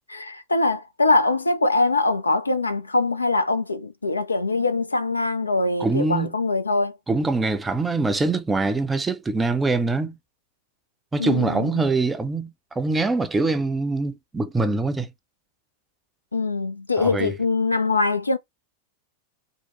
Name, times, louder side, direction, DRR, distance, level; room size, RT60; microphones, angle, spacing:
voice 1, 0.1-7.0 11.2-11.8 16.3-18.4, left 3 dB, 80° left, 0.4 m, -23 dB
voice 2, 5.8-6.3 7.1-10.1 11.1-12.5 12.8-15.1 17.0-17.3, right 3 dB, 10° right, 0.4 m, -23 dB
2.8 x 2.0 x 3.1 m
figure-of-eight pair, 90°, 0 cm